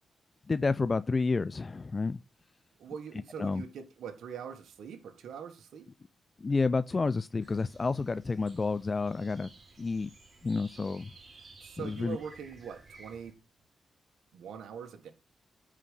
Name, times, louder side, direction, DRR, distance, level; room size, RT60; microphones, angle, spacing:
voice 1, 0.5-2.2 3.4-3.6 6.4-9.5 9.8-10.1 10.4-11.1 11.8-12.2, left 4 dB, 40° left, 0.4 m, -30 dB
voice 2, 2.8-5.9 11.6-13.4 14.3-15.1, right 7 dB, 85° right, 1.5 m, -43 dB
sound 1, 7.4-13.3, right 3 dB, 50° right, 3.9 m, -55 dB
9.8 x 5.0 x 5.4 m
cardioid pair, 60°, 0 cm